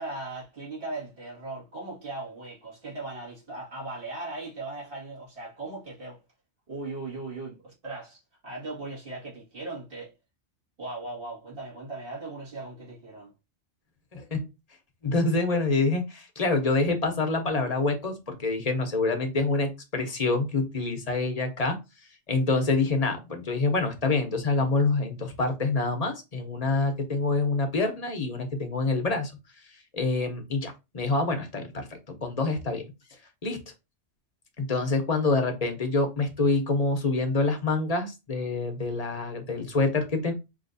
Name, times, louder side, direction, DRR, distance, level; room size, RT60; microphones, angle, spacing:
voice 1, 0.0-6.2 6.7-10.1 10.8-13.3, right 2 dB, 55° right, 2.2 m, -38 dB
voice 2, 14.1-14.4 15.0-21.8 22.3-29.3 29.9-32.8 33.4-33.6 34.6-40.3, left 3 dB, 35° left, 0.8 m, -26 dB
5.6 x 2.8 x 2.6 m
omnidirectional pair, 1.2 m